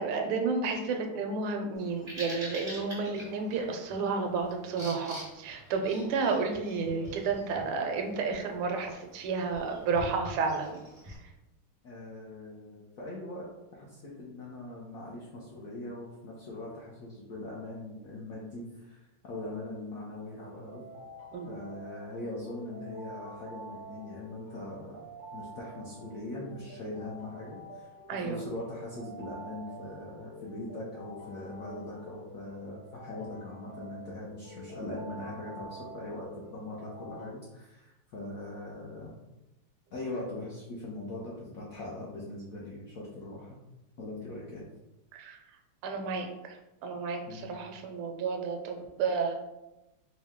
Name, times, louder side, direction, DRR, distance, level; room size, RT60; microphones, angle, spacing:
voice 1, 0.0-10.8 11.0-11.1 21.3-21.5 28.1-28.4 45.1-45.4 45.8-46.6 46.8-49.3, right 4 dB, 85° right, 4 dB, 1.5 m, -31 dB
Bird vocalization bird call bird song, 1.8-11.2, equal, 30° right, 0.5 m, -46 dB
voice 2, 11.8-13.5 13.7-20.8 21.5-25.0 25.3-27.9 28.2-39.1 39.9-43.6 44.0-44.6 47.3-47.5, left 2 dB, 75° left, -5 dB, 0.8 m, -41 dB
sound 1, 20.4-37.3, right 1 dB, 60° right, 0.8 m, -48 dB
4.5 x 2.2 x 3.5 m, 0.97 s
omnidirectional pair, 2.3 m